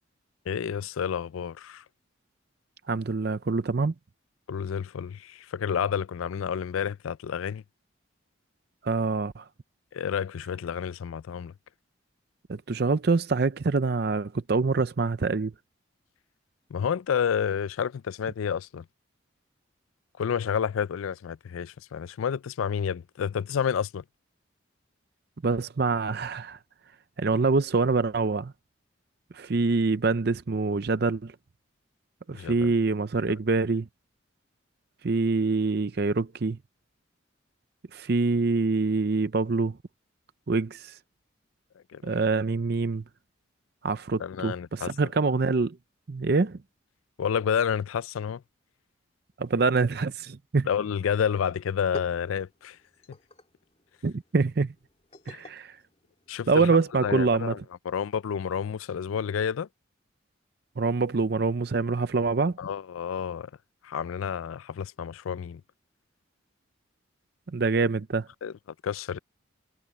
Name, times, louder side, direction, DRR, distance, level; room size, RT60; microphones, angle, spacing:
voice 1, 0.5-1.8 4.5-7.6 9.9-11.5 16.7-18.8 20.2-24.0 32.3-32.7 33.3-33.4 41.9-42.3 44.2-44.9 47.2-48.4 50.7-52.8 55.3-55.4 56.3-57.6 57.9-59.7 62.6-63.5 63.8-65.6 68.4-68.5 68.8-69.2, left 7 dB, 90° left, 0.4 m, -30 dB
voice 2, 2.9-3.9 8.8-9.4 12.5-15.5 25.4-26.6 27.2-28.5 29.3-31.3 32.3-33.9 35.0-36.6 37.9-39.8 40.5-41.0 42.0-43.0 43.8-45.8 46.1-46.6 49.4-50.7 54.0-54.7 55.3-55.8 56.5-57.5 60.8-62.6 67.5-68.3, right 3 dB, 50° right, 0.5 m, -25 dB
sound 1, 51.7-56.8, left 1 dB, 30° left, 3.0 m, -49 dB
head